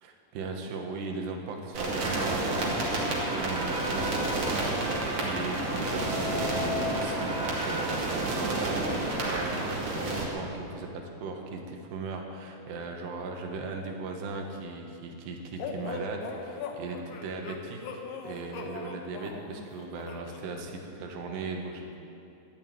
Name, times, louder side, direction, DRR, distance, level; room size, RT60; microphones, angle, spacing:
voice 1, 0.0-17.8 18.2-22.0, right 3 dB, 75° right, 2 dB, 3.5 m, -38 dB
sound 1, 1.7-10.2, right 2 dB, 45° right, 2.9 m, -29 dB
sound 2, 15.6-20.4, left 4 dB, 85° left, 3.6 m, -39 dB
12.5 x 11.0 x 9.1 m, 2.7 s
omnidirectional pair, 5.2 m